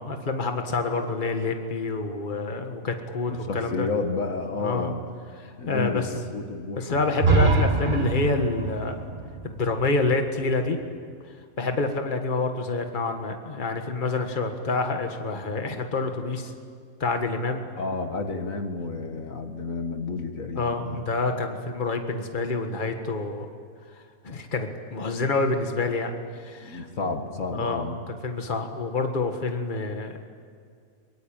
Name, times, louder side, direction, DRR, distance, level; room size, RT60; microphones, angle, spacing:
voice 1, 0.1-3.9 4.6-4.9 5.4-6.1 6.8-8.9 9.4-10.8 11.6-16.5 17.0-17.7 20.6-23.5 24.2-26.9 27.5-30.2, left 3 dB, 35° left, 5 dB, 1.8 m, -27 dB
voice 2, 3.3-5.0 5.6-7.1 17.7-21.0 26.6-28.0, left 3 dB, 70° left, 5 dB, 2.2 m, -31 dB
sound 1, 7.2-11.0, right 3 dB, 40° right, 1.5 m, -25 dB
23.5 x 22.5 x 9.0 m, 2.2 s
omnidirectional pair, 1.5 m